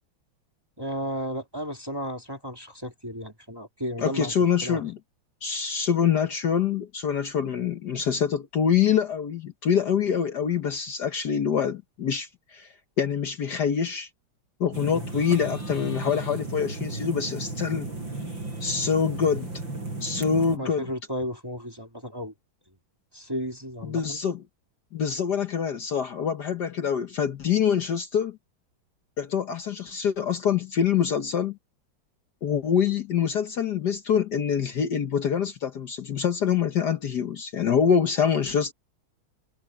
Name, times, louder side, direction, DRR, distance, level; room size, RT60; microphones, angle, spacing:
voice 1, 0.8-4.3 4.6-4.9 14.9-15.0 20.5-22.3 23.1-24.2, equal, 10° right, 2.0 m, -34 dB
voice 2, 4.0-5.0 5.4-12.7 13.0-14.1 14.6-17.9 18.6-19.5 20.0-20.8 23.8-24.4 24.9-28.4 29.2-31.6 32.4-38.7, left 7 dB, 55° left, 1.6 m, -25 dB
sound 1, 14.7-20.6, right 2 dB, 65° right, 7.9 m, -34 dB
omnidirectional pair, 2.3 m